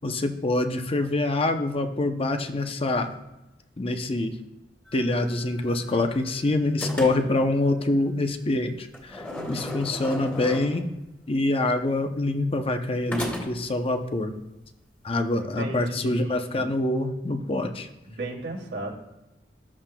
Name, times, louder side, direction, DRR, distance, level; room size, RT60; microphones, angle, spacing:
voice 1, 0.0-3.1 3.8-4.3 4.9-10.8 11.3-14.4 15.0-17.9, left 2 dB, 35° left, 6 dB, 0.6 m, -25 dB
sound 1, 4.9-6.3 6.8-7.5 8.9-11.0 13.1-13.8, left 1 dB, 10° left, 1.9 m, -36 dB
voice 2, 9.3-9.7 15.4-16.7 18.1-18.9, right 2 dB, 90° right, -2 dB, 2.5 m, -35 dB
13.0 x 7.3 x 2.2 m, 0.99 s
head